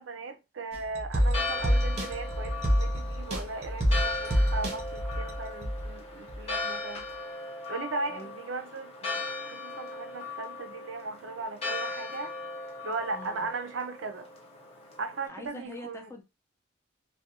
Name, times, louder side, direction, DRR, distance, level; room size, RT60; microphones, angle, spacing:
voice 1, 0.0-7.0 7.7-9.1 9.5-12.3 12.8-14.3 15.0-16.1, right 3 dB, 75° right, 0.5 m, -37 dB
sound 1, 0.7-5.9 6.3-6.4, equal, 30° right, 0.6 m, -28 dB
Church bell, 1.2-15.3, left 3 dB, 30° left, 0.8 m, -38 dB
voice 2, 13.1-13.5 15.3-16.2, left 2 dB, 15° left, 0.5 m, -44 dB
2.3 x 2.2 x 2.8 m
head